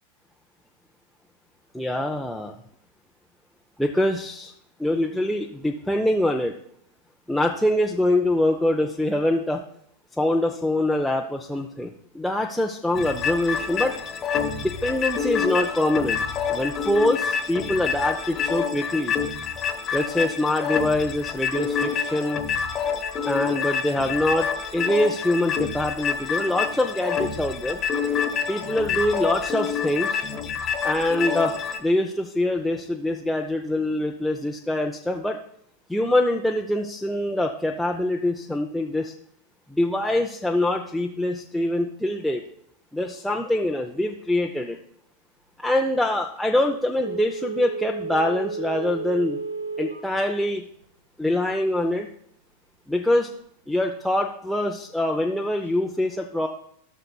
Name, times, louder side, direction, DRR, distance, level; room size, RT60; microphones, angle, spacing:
voice 1, 1.7-2.6 3.8-4.5 4.8-6.5 7.3-9.6 10.2-13.9 14.6-16.2 16.5-19.2 19.9-22.4 23.2-24.5 24.7-27.8 28.5-30.2 30.8-31.5 31.8-35.4 35.9-39.1 39.7-42.4 42.9-44.8 45.6-49.4 49.8-50.6 51.2-52.1 52.9-53.3 53.7-56.5, left 1 dB, ahead, 0 dB, 0.6 m, -24 dB
sound 1, 12.9-31.8, left 7 dB, 25° left, 1.0 m, -27 dB
Telephone, 47.0-50.1 50.5-50.6, right 4 dB, 75° right, 1.0 m, -32 dB
15.0 x 6.6 x 2.3 m, 0.70 s
figure-of-eight pair, 90°, 0 cm